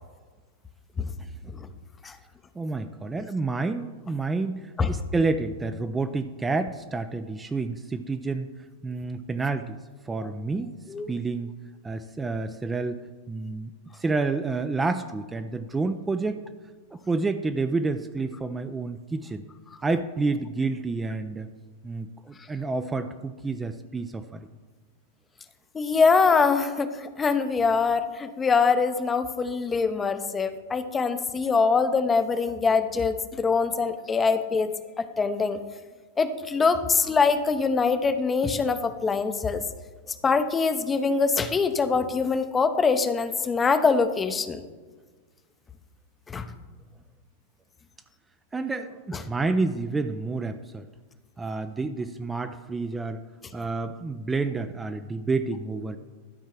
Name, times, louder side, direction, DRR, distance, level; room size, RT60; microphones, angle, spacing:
voice 1, 2.5-8.5 8.8-9.8 10.1-10.7 11.1-11.5 11.8-16.4 16.9-19.4 19.8-21.5 21.8-24.5 48.5-50.9 51.4-53.2 53.5-56.0, right 3 dB, 15° right, 9 dB, 0.5 m, -29 dB
voice 2, 25.7-35.6 36.2-39.6 40.2-44.6 46.3-46.5 49.1-49.2, left 5 dB, 20° left, 10 dB, 0.7 m, -24 dB
12.5 x 4.6 x 6.0 m, 1.4 s
figure-of-eight pair, 95°, 0 cm